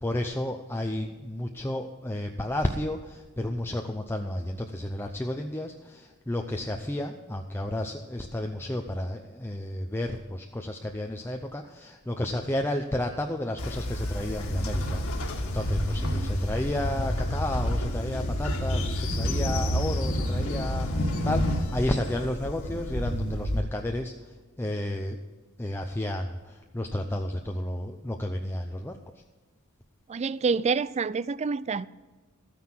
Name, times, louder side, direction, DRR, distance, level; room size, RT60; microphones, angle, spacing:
voice 1, 0.0-25.2 25.6-29.0, left 1 dB, 10° left, 0.6 m, -32 dB
Train, 13.6-23.6, equal, 70° left, 1.9 m, -29 dB
voice 2, 16.0-16.4 30.1-31.9, right 5 dB, 30° right, 0.3 m, -28 dB
13.5 x 9.4 x 6.0 m
head